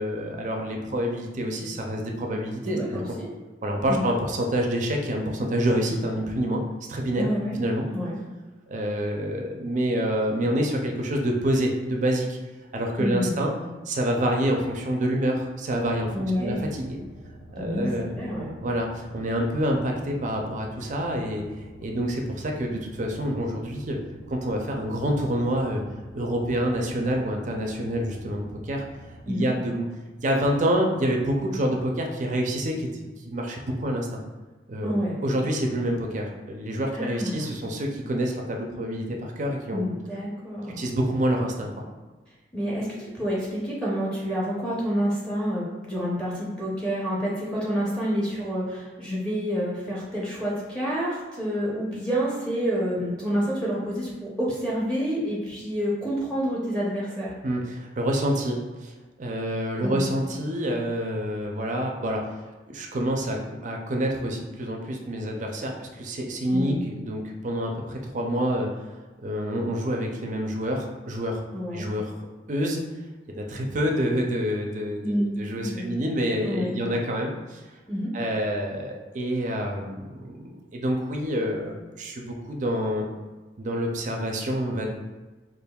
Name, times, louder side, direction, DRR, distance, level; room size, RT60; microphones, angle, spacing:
voice 1, 0.0-3.0 3.6-6.6 6.9-7.3 7.6-7.8 8.7-12.4 12.7-13.5 13.9-16.1 16.4-17.0 17.5-18.1 18.6-21.4 21.8-24.0 24.3-25.8 26.1-28.8 29.3-29.9 30.2-34.2 34.7-34.9 35.2-39.8 40.8-41.9 57.4-58.9 59.2-62.2 62.7-68.9 69.2-71.4 71.7-72.1 72.5-72.8 73.3-77.6 78.1-83.1 83.6-84.9, equal, 40° right, 1 dB, 0.5 m, -27 dB
voice 2, 2.6-3.3 3.9-4.0 7.2-7.5 7.9-8.2 13.0-13.5 16.1-16.6 17.6-18.5 29.3-29.5 34.8-35.1 36.9-37.5 39.7-40.8 42.5-57.3 59.8-60.1 66.5-66.8 71.5-71.9 75.0-76.0 76.4-76.7 77.9-78.1, equal, 5° left, -7 dB, 0.7 m, -28 dB
sound 1, 15.7-29.2, right 1 dB, 90° left, 0.7 m, -47 dB
5.1 x 2.5 x 2.3 m, 1.3 s
head